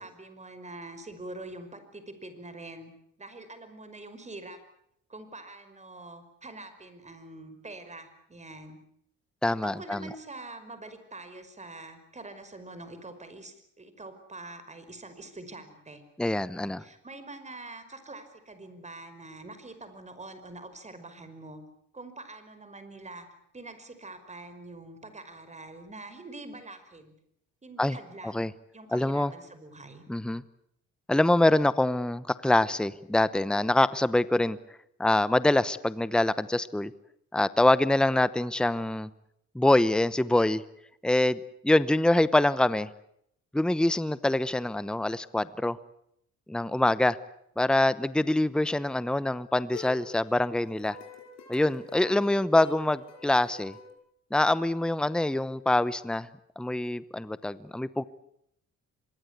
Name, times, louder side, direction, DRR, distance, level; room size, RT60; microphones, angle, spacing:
voice 1, 0.0-2.9 3.2-4.6 5.1-8.8 9.6-16.0 16.5-21.6 21.9-23.3 23.5-27.1 27.6-30.0, right 2 dB, 25° right, 10 dB, 5.4 m, -45 dB
voice 2, 9.4-10.1 16.2-16.8 27.8-28.0 28.2-28.5 28.9-29.3 30.1-30.4 31.1-34.6 35.0-36.9 37.3-39.1 39.5-40.6 41.0-42.9 43.5-45.8 46.5-47.2 47.6-51.0 51.5-53.8 54.3-56.3 56.6-58.0, left 1 dB, 5° left, 16 dB, 0.9 m, -25 dB
sound 1, 49.7-53.9, left 5 dB, 60° left, 6.0 m, -47 dB
25.5 x 22.5 x 8.3 m, 0.73 s
cardioid pair, 90°, 30 cm